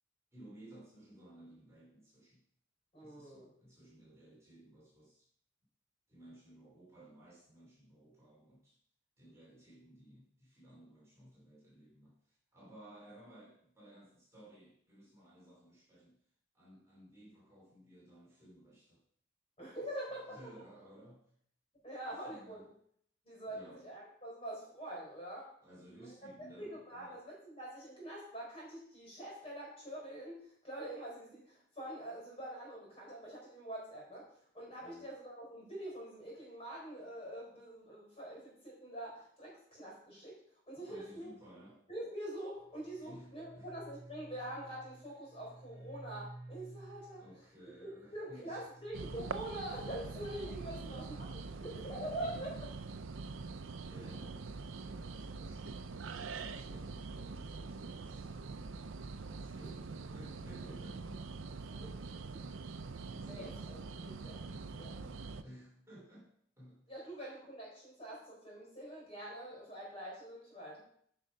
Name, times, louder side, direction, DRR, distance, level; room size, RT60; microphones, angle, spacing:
voice 1, 0.3-2.4 3.0-5.3 6.1-8.8 9.2-16.2 16.5-19.0 20.3-21.3 22.1-22.7 23.5-23.9 25.6-27.2 34.8-35.1 40.7-41.8 43.0-43.7 47.1-48.7 50.7-51.2 52.1-52.5 53.8-58.3 59.3-61.2 62.5-62.7 63.1-63.7 64.4-64.7 65.4-67.1, right 1 dB, 15° right, -6 dB, 3.0 m, -57 dB
voice 2, 2.9-3.5 19.6-20.4 21.8-22.6 23.2-25.5 26.0-26.1 26.6-34.3 34.5-40.4 40.7-41.3 41.9-47.2 47.8-51.3 51.6-52.5 59.6-59.7 61.7-61.9 63.3-64.4 64.7-65.1 66.9-70.8, right 1 dB, 30° left, -3 dB, 4.5 m, -45 dB
sound 1, 42.6-50.6, right 2 dB, 40° right, 4.3 m, -54 dB
sound 2, 48.9-65.4, right 4 dB, 80° right, 0.5 m, -44 dB
9.6 x 5.7 x 5.0 m, 0.65 s
head